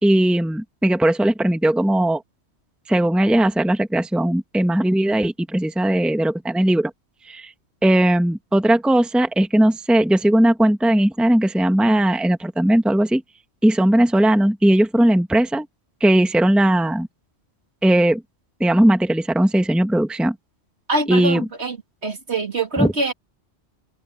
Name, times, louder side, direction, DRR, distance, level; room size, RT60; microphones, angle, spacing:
voice 1, 0.0-2.2 2.9-6.9 7.2-7.5 7.8-13.2 13.6-15.7 16.0-17.1 17.8-18.2 18.6-20.3 21.1-21.5 22.8-22.9, right 1 dB, ahead, 1.2 m, -18 dB
voice 2, 20.9-21.8 22.0-23.1, right 2 dB, 60° right, 2.8 m, -24 dB
omnidirectional pair, 1.2 m